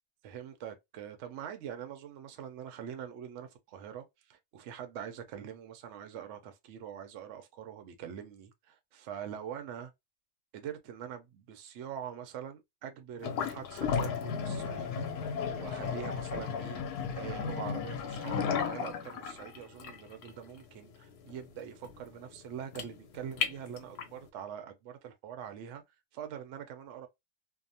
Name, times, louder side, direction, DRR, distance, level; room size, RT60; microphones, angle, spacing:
voice 1, 0.2-9.9 10.5-25.8 26.1-27.1, right 9 dB, 65° right, 0.7 m, -44 dB
sound 1, 13.2-24.2, left 6 dB, 75° left, 1.1 m, -35 dB
2.8 x 2.1 x 2.6 m
omnidirectional pair, 1.7 m